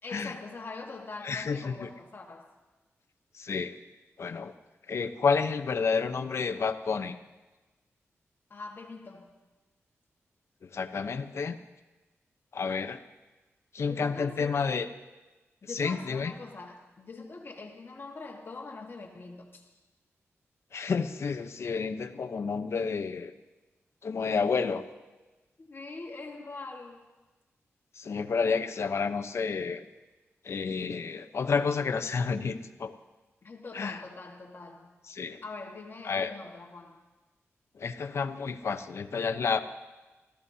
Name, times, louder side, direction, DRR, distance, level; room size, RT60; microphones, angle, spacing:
voice 1, 0.0-2.5 8.5-9.4 13.9-14.7 15.6-19.7 25.6-27.1 33.4-34.9 35.4-37.0, left 3 dB, 45° left, 1 dB, 1.6 m, -43 dB
voice 2, 1.2-1.9 3.3-3.8 4.2-4.5 4.9-7.2 10.6-11.6 12.5-13.0 13.7-14.9 15.6-16.3 20.7-23.3 24.0-24.8 28.0-29.8 30.4-32.9 33.7-34.0 35.1-35.4 36.1-36.3 37.7-39.6, left 5 dB, 60° left, 7 dB, 0.9 m, -30 dB
27.0 x 14.5 x 2.8 m, 1.2 s
wide cardioid pair, 105°, 5 cm